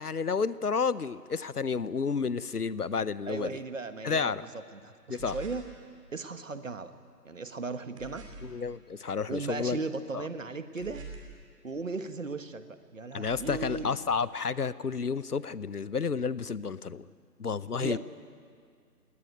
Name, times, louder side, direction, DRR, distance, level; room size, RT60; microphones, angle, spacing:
voice 1, 0.0-3.6 4.0-4.4 5.1-5.4 8.4-9.8 10.1-10.3 13.1-17.1 17.4-18.0, left 5 dB, 65° left, 18 dB, 0.8 m, -31 dB
voice 2, 3.3-4.4 4.7-5.6 6.1-6.9 7.2-8.2 9.3-11.0 11.6-13.9 17.8-18.0, right 3 dB, 50° right, 11 dB, 1.4 m, -36 dB
sound 1, 5.2-5.7 8.0-8.6 10.8-11.4 13.2-14.0, right 3 dB, 20° right, 2.7 m, -44 dB
22.0 x 18.0 x 9.3 m, 2.1 s
figure-of-eight pair, 155°, 48 cm